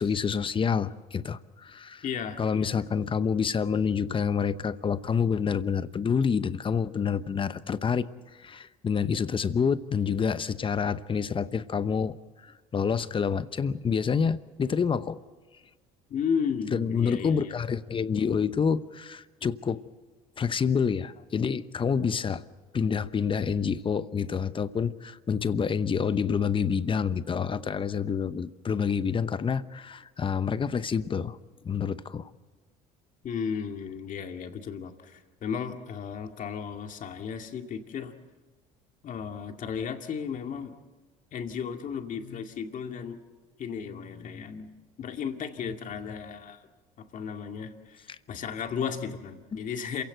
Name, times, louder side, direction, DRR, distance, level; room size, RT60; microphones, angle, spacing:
voice 1, 0.0-2.0 2.4-8.1 8.4-12.2 12.4-15.2 16.7-19.8 20.4-22.4 22.7-31.4 31.6-32.3 49.5-49.6, left 6 dB, 30° left, 14 dB, 0.9 m, -28 dB
voice 2, 2.0-2.8 16.1-17.5 33.2-38.1 39.0-40.7 41.3-43.2 43.6-44.7 45.0-46.6 47.0-50.0, left 7 dB, 50° left, 5 dB, 2.2 m, -34 dB
27.0 x 16.5 x 7.9 m, 1.3 s
supercardioid pair, 85°, 17 cm